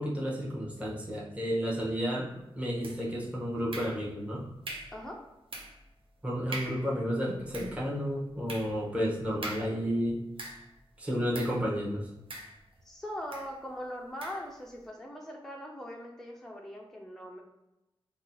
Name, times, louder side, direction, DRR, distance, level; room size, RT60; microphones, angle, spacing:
voice 1, 0.0-4.4 6.2-10.2 11.0-12.1, equal, 15° right, -6 dB, 0.9 m, -32 dB
sound 1, 2.8-3.2 3.7-4.3 4.6-5.0 5.5-5.9 6.2-6.3 6.5-6.9 7.3-10.8 11.3-11.7 12.3-12.9 13.3-13.5 14.2-14.5, right 2 dB, 65° right, 0.6 m, -43 dB
voice 2, 12.9-17.4, equal, 5° left, -1 dB, 0.4 m, -41 dB
2.8 x 2.3 x 4.0 m, 0.93 s
wide cardioid pair, 80°, 10 cm